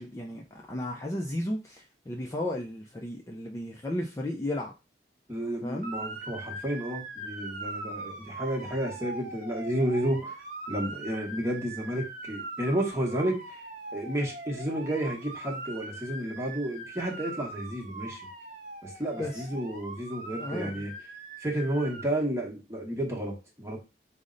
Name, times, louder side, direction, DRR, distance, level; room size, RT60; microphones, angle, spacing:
voice 1, 0.0-4.7 5.6-5.9 19.2-19.5 20.4-20.8, left 1 dB, 15° left, 0.4 m, -34 dB
voice 2, 5.3-10.3 10.7-13.6 13.9-18.2 18.8-20.9 21.4-23.8, right 1 dB, 15° right, 1.0 m, -31 dB
Motor vehicle (road) / Siren, 5.8-22.0, right 2 dB, 45° right, 0.8 m, -41 dB
5.1 x 2.1 x 3.8 m
head